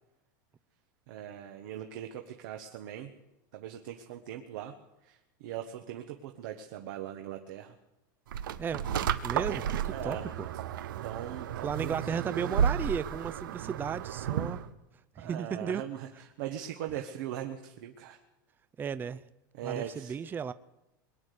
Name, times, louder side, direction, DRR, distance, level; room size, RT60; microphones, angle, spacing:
voice 1, 1.1-3.1 3.5-4.7 5.0-7.7 9.9-10.3 11.0-11.9 15.1-18.2 19.5-20.1, right 11 dB, 70° right, 5 dB, 1.3 m, -40 dB
sound 1, 8.3-14.7, right 9 dB, 90° right, 0.9 m, -32 dB
voice 2, 9.2-10.5 11.6-14.6 15.2-15.8 18.8-19.2 19.6-20.5, right 7 dB, 20° right, 14 dB, 0.5 m, -34 dB
22.0 x 9.5 x 6.7 m, 0.95 s
supercardioid pair, 130°, 11 cm